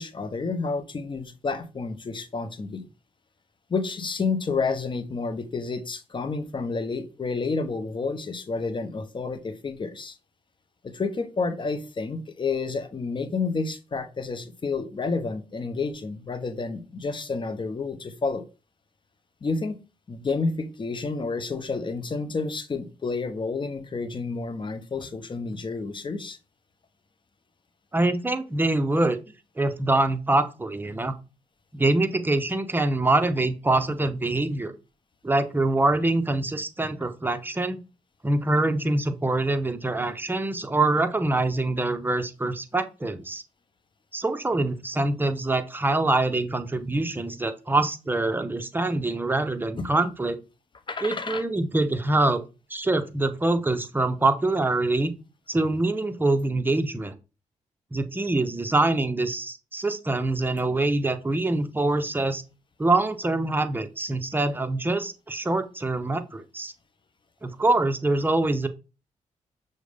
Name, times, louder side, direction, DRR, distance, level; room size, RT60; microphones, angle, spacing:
voice 1, 0.0-2.9 3.7-10.2 10.8-18.4 19.4-19.8 20.1-26.4 49.8-49.9 50.9-51.4, left 4 dB, 35° left, 10 dB, 0.7 m, -30 dB
voice 2, 27.9-29.2 29.6-31.1 31.7-34.7 35.2-37.8 38.2-43.4 44.1-50.4 51.0-52.4 52.7-55.1 55.5-57.1 57.9-62.4 62.8-66.7 67.4-68.7, right 2 dB, 15° right, 8 dB, 0.6 m, -24 dB
6.1 x 2.1 x 3.4 m, 0.31 s
supercardioid pair, 55°, 14 cm